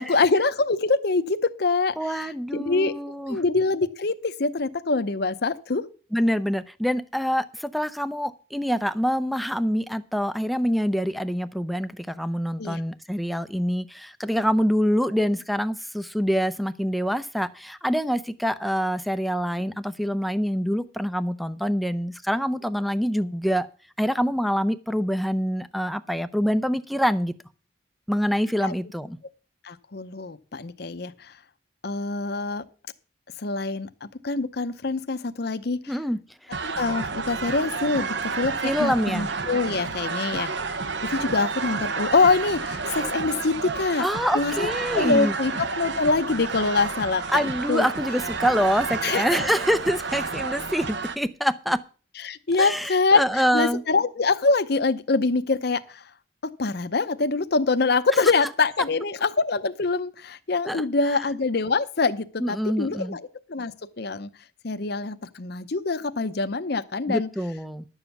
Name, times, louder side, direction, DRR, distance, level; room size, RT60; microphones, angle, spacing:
voice 1, 0.0-2.9 3.3-5.8 12.6-12.8 28.6-28.7 29.6-31.3 31.8-32.6 33.4-35.9 36.6-40.5 41.0-44.0 44.3-44.7 44.9-47.9 49.0-49.2 52.2-56.0 56.4-63.2 63.5-64.3 64.6-67.3, left 3 dB, 55° left, 11 dB, 0.7 m, -25 dB
voice 2, 2.0-3.4 6.1-23.7 24.0-27.3 28.1-29.2 35.9-36.6 38.6-39.3 44.0-45.3 47.3-51.8 52.6-53.8 58.2-58.3 60.7-60.8 62.4-63.2 67.1-67.9, equal, ahead, 12 dB, 0.5 m, -25 dB
sound 1, 36.5-51.2, right 4 dB, 65° right, 0.9 m, -30 dB
11.5 x 7.2 x 7.0 m, 0.38 s
head